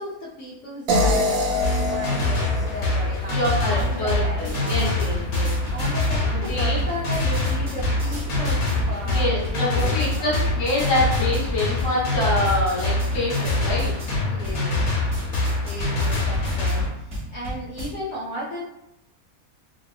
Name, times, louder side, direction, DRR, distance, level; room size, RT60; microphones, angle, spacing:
voice 1, 0.0-4.9 5.7-10.3 14.2-14.8 15.6-18.7, equal, 65° left, -7 dB, 0.9 m, -35 dB
sound 1, 0.9-4.0, left 1 dB, 85° right, 1.1 m, -25 dB
sound 2, 1.6-16.9, left 2 dB, 85° left, 1.2 m, -25 dB
voice 2, 3.3-5.5 6.3-6.8 9.0-13.9, left 1 dB, 25° left, -7 dB, 0.8 m, -26 dB
sound 3, 3.7-17.9, right 1 dB, 45° right, 0.9 m, -34 dB
2.7 x 2.2 x 2.4 m, 0.86 s
omnidirectional pair, 1.5 m